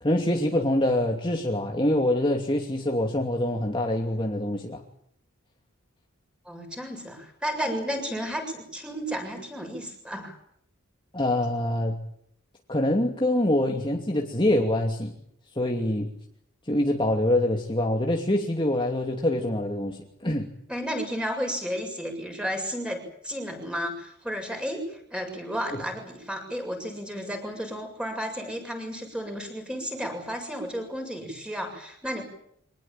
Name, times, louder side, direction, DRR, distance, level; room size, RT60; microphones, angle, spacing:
voice 1, 0.0-4.8 11.1-12.0 12.7-15.1 15.6-16.1 16.7-20.5 25.7-25.8, left 1 dB, 20° left, 1 dB, 2.7 m, -25 dB
voice 2, 6.5-10.4 20.7-32.2, equal, 5° right, 4 dB, 7.1 m, -33 dB
26.0 x 20.0 x 9.0 m, 0.70 s
head